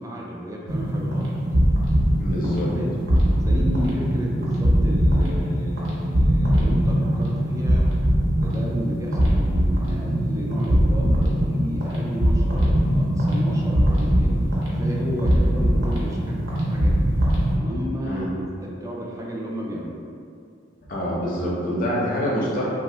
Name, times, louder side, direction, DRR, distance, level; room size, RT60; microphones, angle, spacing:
voice 1, 0.0-1.4 2.4-2.9 3.4-7.9 8.3-14.3 14.6-17.0 17.5-20.1, equal, 15° right, -2 dB, 0.3 m, -33 dB
sound 1, 0.7-17.6, equal, 70° right, 0.7 m, -21 dB
voice 2, 2.2-2.7 18.1-18.3 20.9-22.7, equal, 45° left, -5 dB, 0.6 m, -25 dB
2.8 x 2.1 x 3.3 m, 2.4 s
head